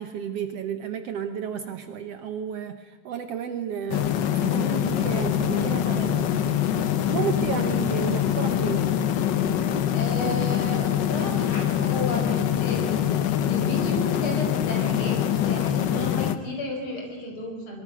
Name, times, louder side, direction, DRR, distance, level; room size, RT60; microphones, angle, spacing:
voice 1, 0.0-6.6 7.1-8.9, right 8 dB, 65° right, 9 dB, 1.9 m, -32 dB
sound 1, 3.9-16.3, left 10 dB, 75° left, 1.0 m, -24 dB
voice 2, 9.9-17.8, left 1 dB, 45° left, 1 dB, 5.4 m, -33 dB
23.5 x 23.5 x 6.2 m, 1.4 s
omnidirectional pair, 3.3 m